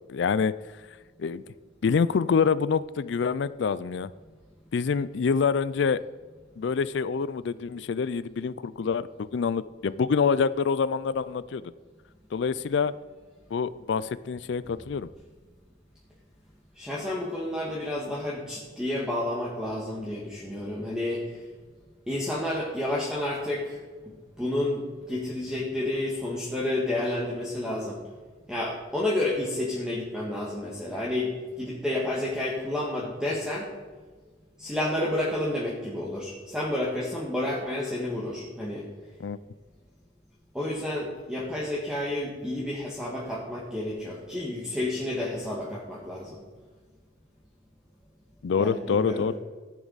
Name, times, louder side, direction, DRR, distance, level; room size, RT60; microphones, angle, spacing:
voice 1, 0.1-0.5 1.2-1.4 1.8-4.1 4.7-6.0 6.6-11.6 12.3-12.9 13.5-15.1 39.2-39.4 48.4-49.3, left 5 dB, 65° left, 17 dB, 0.4 m, -26 dB
voice 2, 16.8-21.2 22.1-23.8 24.4-28.0 28.5-31.3 31.6-33.7 34.6-38.9 40.5-46.4 48.5-49.3, left 1 dB, 5° right, -5 dB, 1.7 m, -30 dB
14.5 x 10.5 x 4.1 m, 1.4 s
head